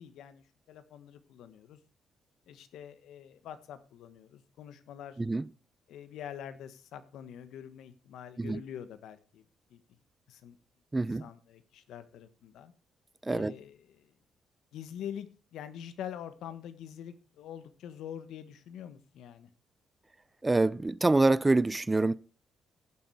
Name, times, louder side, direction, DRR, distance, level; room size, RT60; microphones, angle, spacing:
voice 1, 0.0-1.8 2.5-5.2 5.9-9.4 9.7-9.8 10.3-10.6 11.1-12.7 13.3-14.1 14.7-19.5, left 9 dB, 85° left, 1.4 m, -45 dB
voice 2, 10.9-11.3 13.2-13.5 20.4-22.1, right 2 dB, 20° right, 0.5 m, -26 dB
16.0 x 7.8 x 4.8 m
cardioid pair, 85°, 0 cm